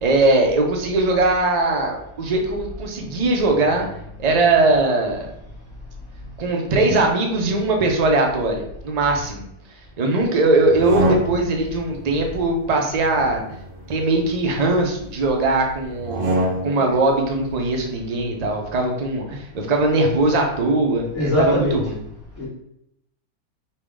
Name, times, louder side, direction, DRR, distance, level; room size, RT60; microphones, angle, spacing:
voice 1, 0.0-3.9 4.2-5.3 6.4-9.5 10.0-13.4 13.9-16.4 16.6-22.0, right 2 dB, 45° right, 2 dB, 0.5 m, -20 dB
sound 1, 10.6-11.7 13.0-14.6 16.0-17.0, right 1 dB, 60° right, 0.9 m, -26 dB
voice 2, 21.1-21.8 22.4-22.5, left 1 dB, 55° left, -9 dB, 1.6 m, -20 dB
5.6 x 2.3 x 3.5 m, 0.77 s
omnidirectional pair, 1.6 m